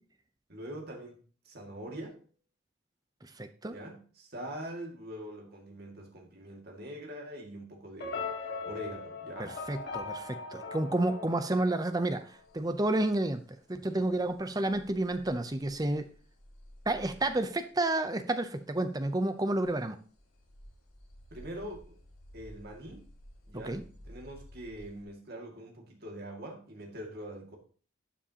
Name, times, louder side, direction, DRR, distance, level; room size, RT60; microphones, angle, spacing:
voice 1, 0.5-1.2 1.4-2.2 3.7-9.6 13.9-14.1 21.3-22.0 22.3-23.1 23.5-27.6, right 1 dB, 45° right, 1 dB, 2.1 m, -43 dB
voice 2, 3.2-3.8 9.4-12.2 12.5-13.4 13.7-16.1 16.9-20.0 23.5-23.8, right 2 dB, 20° right, 9 dB, 0.6 m, -30 dB
sound 1, 8.0-12.3, left 4 dB, 50° left, 1.9 m, -40 dB
sound 2, 12.1-18.0 18.4-18.8 19.2-19.3 19.6-19.8 20.1-25.0, equal, 90° left, 5.0 m, -54 dB
12.5 x 7.3 x 2.9 m, 0.41 s
head